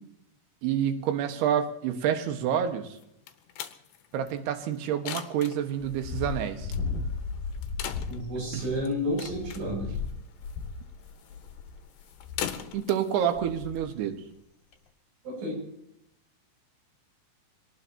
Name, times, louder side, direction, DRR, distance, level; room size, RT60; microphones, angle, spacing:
voice 1, 0.6-2.9 4.1-6.7 8.5-8.6 12.7-14.2, right 9 dB, 65° right, 6 dB, 3.2 m, -28 dB
sound 1, 3.0-14.4, left 10 dB, 75° left, 3.0 m, -42 dB
sound 2, 5.8-13.0 13.3-13.8 14.1-14.2 14.7-14.8, left 4 dB, 50° left, 3.5 m, -36 dB
voice 2, 8.1-9.9 15.2-15.6, equal, 85° right, 0 dB, 10.0 m, -31 dB
26.0 x 19.0 x 2.9 m, 0.78 s
omnidirectional pair, 5.6 m